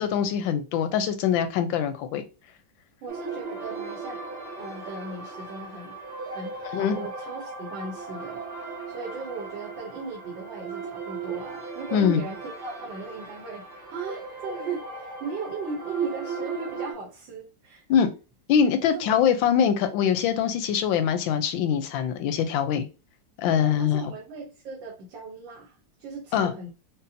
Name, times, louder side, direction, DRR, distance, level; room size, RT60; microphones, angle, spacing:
voice 1, 0.0-2.2 6.7-7.0 11.9-12.2 17.9-18.1 18.5-22.9 23.4-24.1 26.3-26.5, left 8 dB, 85° left, 9 dB, 1.3 m, -23 dB
voice 2, 3.0-4.2 4.6-5.9 6.3-17.8 18.8-19.1 23.5-26.7, right 3 dB, 75° right, -2 dB, 1.6 m, -38 dB
sound 1, 3.1-16.9, right 4 dB, 40° right, 1.3 m, -37 dB
5.3 x 2.1 x 2.7 m, 0.31 s
omnidirectional pair, 2.1 m